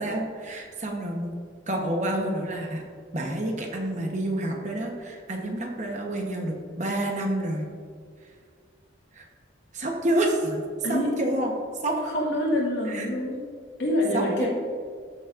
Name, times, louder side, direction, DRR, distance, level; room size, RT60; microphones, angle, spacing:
voice 1, 0.0-1.4 1.7-2.8 3.1-7.7 9.1-9.2 9.7-10.6 10.9-11.5 11.8-12.0 12.8-13.1 14.1-14.5, right 1 dB, 40° right, 1 dB, 1.1 m, -28 dB
voice 2, 11.9-13.4 13.8-14.5, left 1 dB, 65° left, -4 dB, 2.4 m, -26 dB
14.0 x 7.0 x 2.6 m, 2.1 s
head